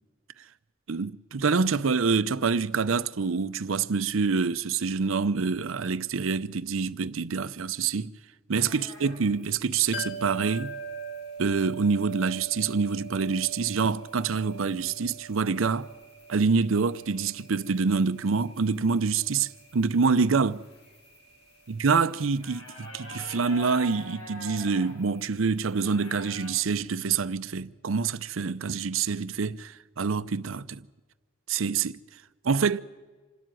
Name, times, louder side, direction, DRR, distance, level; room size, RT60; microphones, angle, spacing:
voice 1, 0.9-8.1 8.5-10.8 11.4-15.9 16.3-20.6 21.7-30.8 31.5-32.0 32.4-32.8, right 5 dB, 80° right, 0.6 m, -26 dB
sound 1, 8.6-26.5, left 1 dB, 90° left, 5.4 m, -49 dB
sound 2, 9.9-21.5 21.8-21.9, right 4 dB, 55° left, 2.0 m, -42 dB
26.5 x 12.5 x 9.1 m
head